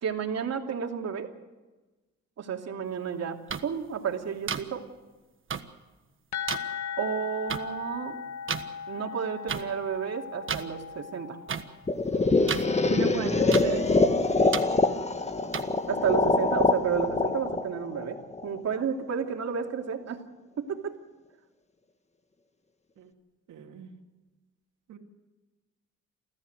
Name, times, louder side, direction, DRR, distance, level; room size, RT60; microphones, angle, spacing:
voice 1, 0.0-1.3 2.4-4.8 7.0-8.2 8.9-11.4 15.9-20.2 20.6-21.0, right 7 dB, 60° right, 3 dB, 2.8 m, -31 dB
sound 1, 3.5-3.6 4.5-4.6 5.5-5.6 6.5-6.6 7.5-7.6 8.5-8.6 9.5-9.6 10.5-10.6 11.5-11.6 12.5-12.6 13.5-13.6 14.5-14.6 15.5-15.6, right 6 dB, 40° right, 1.5 m, -30 dB
sound 2, 6.3-11.9, left 7 dB, 65° left, 1.8 m, -38 dB
sound 3, 11.9-18.8, left 3 dB, 20° left, 1.6 m, -25 dB
voice 2, 12.9-13.8 23.0-23.1 23.5-23.9 24.9-25.0, right 8 dB, 80° right, 2 dB, 2.9 m, -35 dB
29.5 x 13.5 x 7.9 m, 1.2 s
cardioid pair, 90°, 30 cm